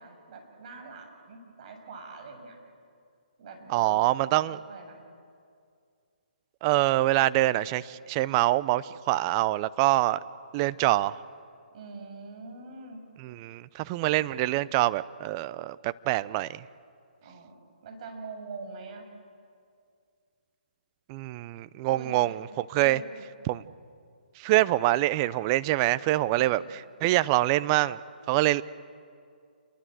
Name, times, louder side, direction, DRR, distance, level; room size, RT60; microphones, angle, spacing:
voice 1, 0.0-2.6 3.4-4.1 4.4-5.0 11.7-13.0 17.2-19.1 21.9-22.4 22.8-23.3 26.3-26.7, right 3 dB, 40° right, 3 dB, 6.7 m, -44 dB
voice 2, 3.7-4.6 6.6-10.2 10.5-11.2 13.2-16.6 21.1-23.0 23.5-23.6 24.4-28.0 28.3-28.6, right 17 dB, 25° right, 16 dB, 0.6 m, -25 dB
29.0 x 23.5 x 7.8 m, 2.3 s
figure-of-eight pair, 140°, 5 cm